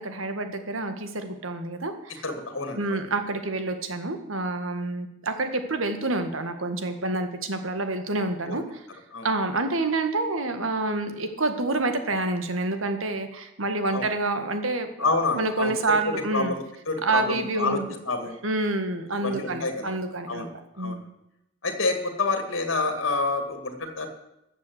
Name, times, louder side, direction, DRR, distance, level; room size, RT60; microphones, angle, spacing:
voice 1, 0.0-2.1 2.8-8.6 9.2-16.5 17.0-18.0 18.4-20.5 20.8-21.0, right 2 dB, 85° right, 7 dB, 1.7 m, -28 dB
voice 2, 2.2-3.0 8.5-8.6 9.1-9.3 13.9-14.1 15.0-15.8 16.3-18.4 19.2-20.0 20.3-20.5 20.8-21.0 21.6-24.1, left 3 dB, 75° left, 6 dB, 2.2 m, -28 dB
14.0 x 7.4 x 8.1 m, 0.87 s
head